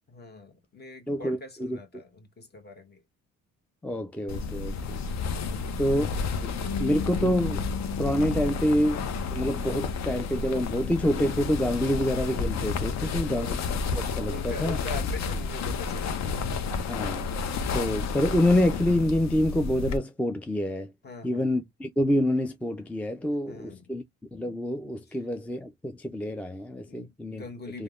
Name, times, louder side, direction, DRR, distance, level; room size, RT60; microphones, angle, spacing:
voice 1, 0.1-3.0 5.4-5.9 12.9-13.6 14.3-16.5 21.0-21.6 23.5-23.9 25.1-25.2 26.9-27.8, left 3 dB, 35° left, 1.0 m, -43 dB
voice 2, 1.1-1.8 3.8-5.0 5.8-6.1 6.4-6.5 6.8-7.6 8.0-13.6 13.9-14.8 16.9-17.3 17.7-20.9 21.2-24.0 24.3-27.4 27.7-27.8, left 1 dB, 5° left, 0.3 m, -27 dB
sound 1, 4.3-20.0, left 5 dB, 60° left, 0.6 m, -31 dB
Bass guitar, 6.6-12.9, left 5 dB, 85° left, 1.1 m, -40 dB
3.2 x 2.1 x 2.3 m
cardioid pair, 90°, 30 cm